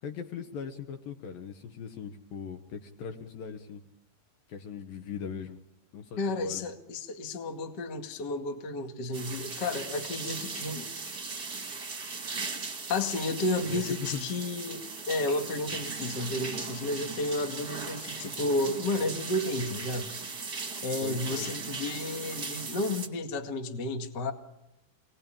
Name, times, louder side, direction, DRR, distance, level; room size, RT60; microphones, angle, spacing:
voice 1, 0.0-3.8 4.5-5.6 5.9-6.6 13.6-14.3 15.7-15.8 16.5-17.0 21.0-21.5, left 7 dB, 65° left, 6 dB, 2.6 m, -40 dB
voice 2, 6.2-10.9 12.9-20.1 20.8-24.3, left 2 dB, 40° left, 4 dB, 1.6 m, -32 dB
sound 1, 9.1-23.1, right 4 dB, 35° right, 1.7 m, -38 dB
27.0 x 19.5 x 8.9 m, 0.91 s
omnidirectional pair, 5.1 m